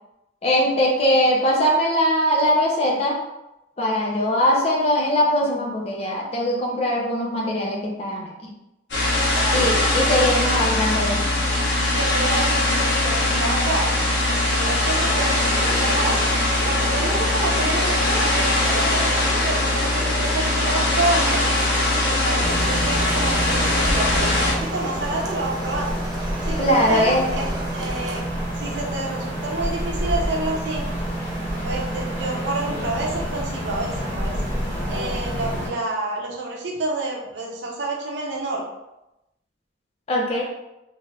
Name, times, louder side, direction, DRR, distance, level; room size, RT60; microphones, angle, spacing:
voice 1, 0.4-3.2 3.8-8.5 9.5-11.4 26.6-27.2 40.1-40.4, equal, 35° left, -2 dB, 0.6 m, -21 dB
sound 1, 8.9-24.5, left 2 dB, 75° left, 0.9 m, -21 dB
voice 2, 9.3-9.7 10.0-10.1 11.5-16.2 16.6-21.4 22.0-26.0 26.4-26.6 26.9-28.2 28.6-30.8 31.6-34.3 34.9-38.6, right 2 dB, 75° right, -2 dB, 0.7 m, -28 dB
sound 2, 14.9-28.2, right 1 dB, 20° right, 0.4 m, -34 dB
sound 3, 22.4-35.7, equal, 10° left, 1.1 m, -28 dB
2.6 x 2.5 x 3.2 m, 0.92 s
head